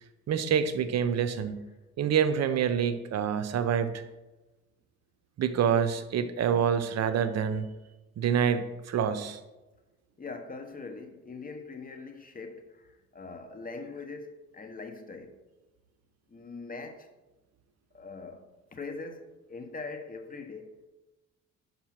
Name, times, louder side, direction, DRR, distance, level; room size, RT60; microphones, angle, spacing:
voice 1, 0.3-1.6 2.0-3.9 5.4-7.7 8.2-9.4, right 8 dB, 60° right, 0.6 m, -27 dB
voice 2, 10.2-15.4 16.3-17.1 17.9-20.9, left 3 dB, 30° left, 1.0 m, -42 dB
6.0 x 5.4 x 5.8 m
cardioid pair, 90°, 30 cm